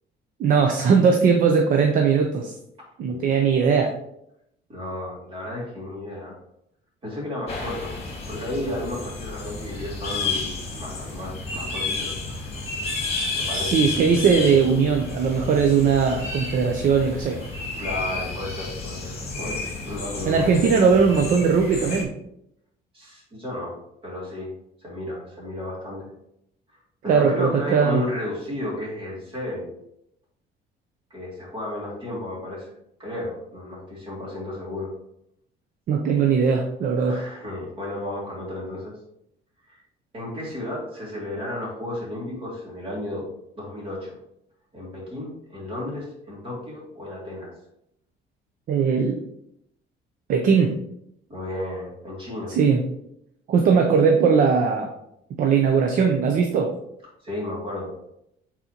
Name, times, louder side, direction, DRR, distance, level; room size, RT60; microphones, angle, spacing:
voice 1, 0.4-2.5 3.0-3.9 13.5-17.4 20.3-22.1 27.1-28.0 35.9-37.2 48.7-49.2 50.3-50.7 52.5-52.8 53.5-54.9 55.4-56.7, right 6 dB, 45° right, 3 dB, 0.6 m, -19 dB
voice 2, 2.8-3.5 4.7-6.4 7.0-8.0 8.3-12.1 13.4-13.8 17.8-20.5 22.9-24.5 24.8-26.1 27.0-29.7 31.1-32.7 33.0-34.9 37.1-38.9 39.7-39.8 40.1-43.2 43.6-44.2 44.7-47.5 51.3-52.5 57.2-57.9, left 1 dB, 30° right, -4 dB, 2.5 m, -33 dB
sound 1, 7.5-22.0, left 3 dB, 35° left, 1.8 m, -31 dB
8.0 x 4.2 x 2.9 m, 0.78 s
cardioid pair, 165°, 19 cm